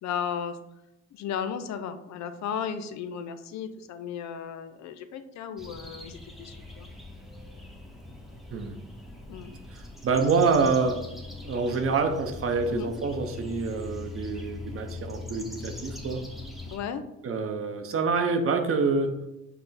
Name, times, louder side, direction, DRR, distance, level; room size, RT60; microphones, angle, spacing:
voice 1, 0.0-0.6 1.1-6.9 9.3-9.6 12.7-12.9 16.7-17.0, left 8 dB, 65° left, 10 dB, 0.5 m, -35 dB
sound 1, 5.6-16.8, left 2 dB, ahead, 0.7 m, -41 dB
voice 2, 9.7-11.1 11.4-16.2 17.2-19.2, right 4 dB, 45° right, 6 dB, 0.6 m, -26 dB
5.6 x 2.1 x 4.0 m, 0.89 s
cardioid pair, 90°, 30 cm